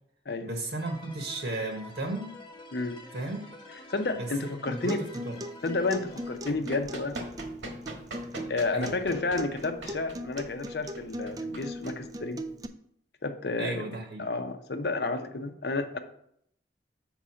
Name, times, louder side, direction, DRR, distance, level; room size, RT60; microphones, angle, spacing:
voice 1, 0.4-2.3 3.1-3.5 4.1-5.4 8.7-9.0 13.6-14.2, right 2 dB, 70° right, 2 dB, 1.1 m, -35 dB
sound 1, 0.8-6.4, left 1 dB, 25° left, 0.9 m, -48 dB
voice 2, 3.9-5.1 5.6-7.2 8.5-12.4 13.2-13.8 14.2-16.0, left 3 dB, 60° left, 7 dB, 0.7 m, -31 dB
Acoustic guitar, 4.7-12.7, equal, 20° right, 0.3 m, -40 dB
Run, 6.3-12.5, right 2 dB, 85° right, 1.5 m, -43 dB
6.3 x 4.6 x 5.6 m, 0.70 s
head